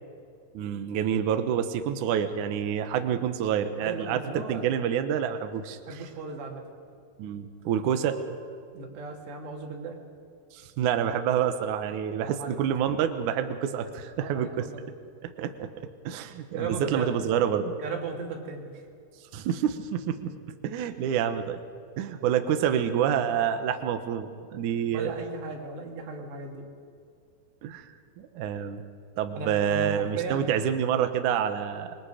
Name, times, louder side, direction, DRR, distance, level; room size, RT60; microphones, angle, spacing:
voice 1, 0.5-5.8 7.2-8.4 10.5-14.6 15.2-15.7 16.0-17.7 19.3-20.3 20.6-21.6 22.0-25.2 27.6-27.9 28.2-28.8 29.2-32.0, right 9 dB, 90° right, 8 dB, 1.7 m, -28 dB
voice 2, 3.8-4.6 5.8-6.6 8.7-10.0 12.2-12.6 14.2-14.8 16.5-17.1 17.8-18.9 24.9-26.7 29.3-30.5, right 4 dB, 70° right, 1 dB, 4.6 m, -36 dB
26.0 x 23.5 x 5.1 m, 2.3 s
omnidirectional pair, 5.2 m